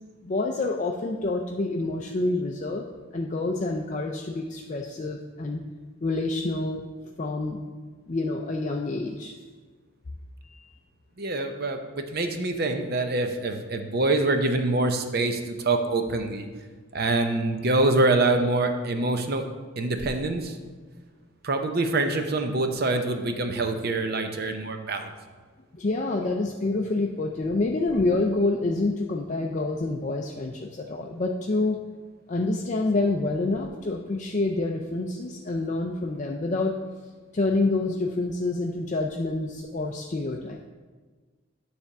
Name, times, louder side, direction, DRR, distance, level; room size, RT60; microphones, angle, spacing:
voice 1, 0.2-2.9 3.1-5.6 6.0-6.8 7.2-7.6 8.1-9.4 10.5-10.7 25.7-31.8 32.3-36.7 37.3-40.7, left 2 dB, 35° left, 1 dB, 0.4 m, -27 dB
voice 2, 11.2-16.5 16.9-19.5 19.8-20.6 21.4-25.1, right 2 dB, 45° right, 6 dB, 0.7 m, -25 dB
9.8 x 3.4 x 6.6 m, 1.4 s
head